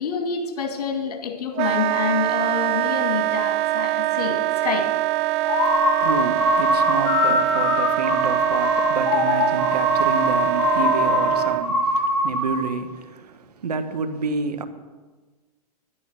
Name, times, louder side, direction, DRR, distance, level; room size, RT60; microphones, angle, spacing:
voice 1, 0.0-4.9, left 6 dB, 70° left, 2.2 m, -27 dB
Wind instrument woodwind instrument, 1.6-11.7, right 16 dB, 30° right, 0.4 m, -23 dB
sound 1, 5.4-12.7, left 2 dB, 35° left, 4.2 m, -22 dB
voice 2, 5.6-14.6, right 5 dB, 80° right, 1.3 m, -29 dB
11.0 x 10.5 x 6.2 m
hypercardioid pair, 115°, 20 cm